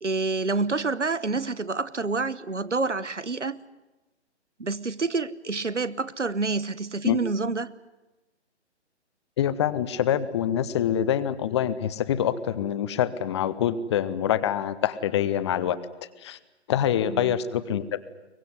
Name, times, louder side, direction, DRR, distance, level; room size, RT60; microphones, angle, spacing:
voice 1, 0.0-3.6 4.6-7.7 17.0-17.4, right 3 dB, 85° right, 1.1 m, -28 dB
voice 2, 9.4-15.8 16.2-16.4 16.7-18.0, left 10 dB, 25° left, 0.8 m, -25 dB
23.0 x 19.5 x 9.6 m
figure-of-eight pair, 135°, 35 cm